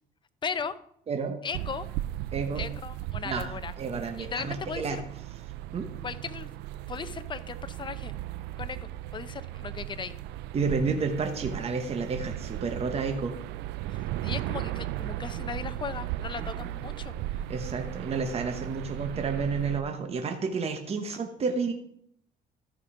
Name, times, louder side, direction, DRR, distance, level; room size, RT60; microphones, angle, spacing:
voice 1, 0.4-0.8 1.4-1.9 2.6-3.7 4.2-5.0 6.0-6.5 6.9-8.1 8.6-10.1 13.9-17.1 21.1-21.2, left 6 dB, 30° left, 12 dB, 0.7 m, -37 dB
voice 2, 1.1-1.4 2.3-2.6 3.2-5.0 5.7-5.9 10.5-13.3 16.4-16.7 17.5-21.7, right 5 dB, 35° right, 5 dB, 1.1 m, -31 dB
sound 1, 1.5-19.8, right 13 dB, 90° right, 0.4 m, -36 dB
14.0 x 5.3 x 5.0 m, 0.69 s
cardioid pair, 110°, 17 cm